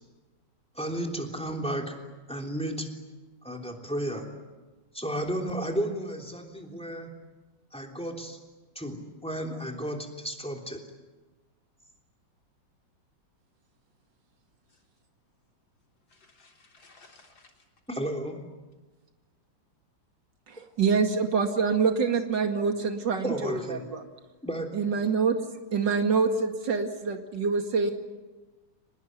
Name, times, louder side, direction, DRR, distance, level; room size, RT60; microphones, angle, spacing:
voice 1, 0.7-2.0 2.3-2.9 3.4-4.3 4.9-7.1 7.7-8.4 8.7-10.8 17.9-18.4 23.2-23.8 24.4-24.7, right 1 dB, 5° left, 2 dB, 3.2 m, -33 dB
voice 2, 16.1-17.7 21.2-21.3 21.6-22.1, left 1 dB, 75° left, 1 dB, 4.6 m, -52 dB
voice 3, 20.5-24.0 24.7-25.4 25.7-27.9, right 5 dB, 65° right, 5 dB, 2.8 m, -26 dB
24.5 x 20.5 x 9.6 m, 1.2 s
omnidirectional pair, 2.1 m